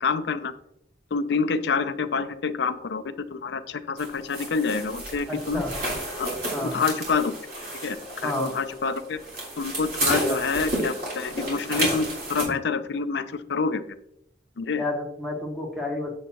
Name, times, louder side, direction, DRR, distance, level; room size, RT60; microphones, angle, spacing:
voice 1, 0.0-0.5 1.1-5.6 6.2-6.3 6.6-7.3 7.8-9.2 9.6-13.8 14.6-14.8, left 5 dB, 65° left, 10 dB, 0.5 m, -27 dB
sound 1, 4.0-12.4, right 1 dB, 55° right, 3.3 m, -31 dB
voice 2, 5.3-5.7 6.5-6.8 8.2-8.5 10.2-10.4 14.8-16.1, left 1 dB, ahead, -1 dB, 1.3 m, -30 dB
7.9 x 7.3 x 2.9 m, 0.77 s
head